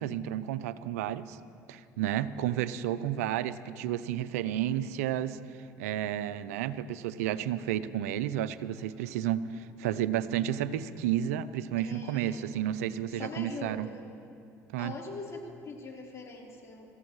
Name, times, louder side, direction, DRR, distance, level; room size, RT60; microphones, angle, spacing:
voice 1, 0.0-1.4 1.7-13.9 14.7-14.9, right 11 dB, 85° right, 14 dB, 0.6 m, -32 dB
voice 2, 11.8-12.4 13.1-14.0 14.8-16.9, left 3 dB, 40° left, -2 dB, 4.0 m, -42 dB
26.0 x 14.0 x 3.2 m, 2.5 s
hypercardioid pair, 65°, 8 cm